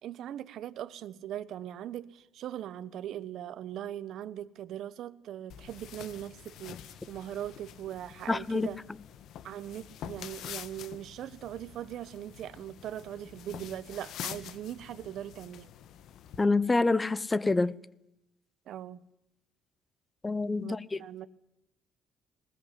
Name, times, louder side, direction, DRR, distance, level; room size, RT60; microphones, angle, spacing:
voice 1, 0.0-8.8 9.4-15.7 18.7-19.0 20.6-21.3, right 11 dB, 60° right, 1.1 m, -40 dB
sound 1, 5.5-16.4, left 10 dB, 65° left, 1.4 m, -46 dB
voice 2, 8.3-8.7 16.4-17.8 20.2-21.0, left 3 dB, 15° left, 0.8 m, -27 dB
21.0 x 19.5 x 9.8 m
cardioid pair, 140°, 0 cm